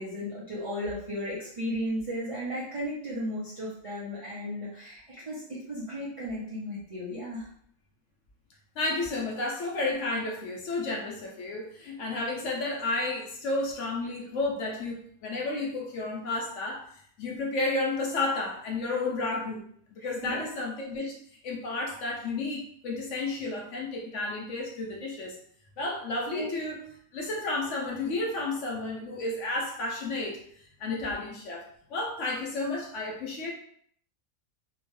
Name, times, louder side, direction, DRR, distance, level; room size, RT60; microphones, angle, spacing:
voice 1, 0.0-7.5 20.0-20.4 26.3-26.5, equal, 55° right, -8 dB, 0.3 m, -35 dB
voice 2, 8.8-16.9 17.2-19.6 19.9-21.1 21.4-25.4 25.8-26.8 27.1-33.5, left 2 dB, 70° left, -1 dB, 0.8 m, -32 dB
2.8 x 2.2 x 3.1 m, 0.63 s
omnidirectional pair, 1.5 m